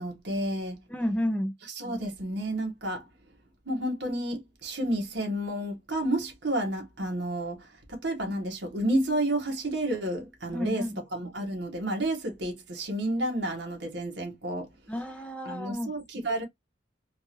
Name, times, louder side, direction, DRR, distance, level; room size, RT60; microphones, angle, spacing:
voice 1, 0.0-0.8 1.8-3.0 3.6-14.7 15.4-16.4, right 1 dB, 70° right, 1.4 m, -31 dB
voice 2, 0.9-1.5 10.5-11.0 14.9-15.9, left 1 dB, 5° left, 0.6 m, -31 dB
3.8 x 2.5 x 3.0 m
head